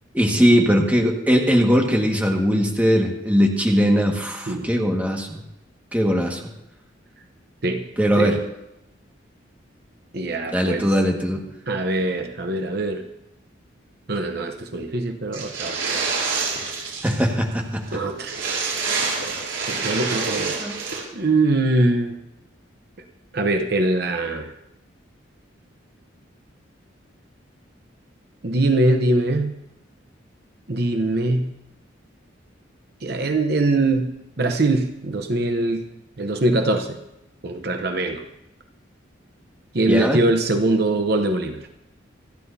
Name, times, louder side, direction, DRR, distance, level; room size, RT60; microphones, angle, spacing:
voice 1, 0.1-5.4 5.9-6.4 8.0-8.4 10.5-11.4 17.0-17.8 20.6-20.7 39.9-40.2, equal, 10° right, 0 dB, 1.7 m, -20 dB
voice 2, 10.1-10.9 11.7-13.0 14.1-15.7 17.9-18.4 19.7-20.6 21.1-22.2 23.3-24.5 28.4-29.5 30.7-31.5 33.0-35.8 36.2-37.0 37.4-38.2 39.7-41.6, right 2 dB, 50° right, 5 dB, 0.9 m, -22 dB
sound 1, 15.3-17.2 17.5-17.6 17.9-18.0 18.2-21.0, right 4 dB, 80° right, 6.4 m, -27 dB
28.0 x 11.0 x 2.8 m, 0.88 s
head